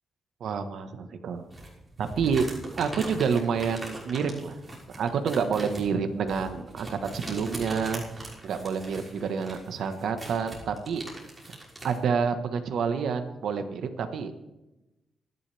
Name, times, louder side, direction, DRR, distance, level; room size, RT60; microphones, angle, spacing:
voice 1, 0.4-1.4 2.0-2.5 2.8-4.6 4.9-8.0 8.4-11.0 11.8-14.4, right 6 dB, 75° right, 7 dB, 1.4 m, -28 dB
sound 1, 1.5-12.0, right 1 dB, 15° right, 5.9 m, -41 dB
27.0 x 11.0 x 3.5 m, 1.0 s
cardioid pair, 95°, 0 cm